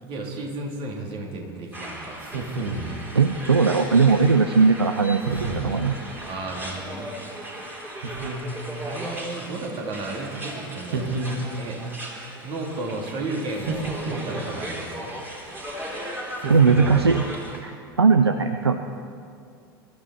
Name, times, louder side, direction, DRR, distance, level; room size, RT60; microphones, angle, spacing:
voice 1, 0.0-2.2 6.2-7.1 8.8-11.1 11.5-11.8 12.4-15.1, right 2 dB, 40° right, 0 dB, 3.1 m, -33 dB
sound 1, 1.7-17.6, right 1 dB, 15° right, 3.4 m, -37 dB
sound 2, 2.2-3.1 5.2-5.8 8.0-8.8 10.9-11.8 13.6-14.6 16.4-17.2, right 2 dB, 60° right, 1.9 m, -31 dB
voice 2, 3.1-5.9 16.5-17.3 17.6-17.7 18.0-18.8, right 4 dB, 85° right, 8 dB, 0.6 m, -19 dB
23.5 x 13.0 x 4.2 m, 2.4 s
figure-of-eight pair, 80°, 13 cm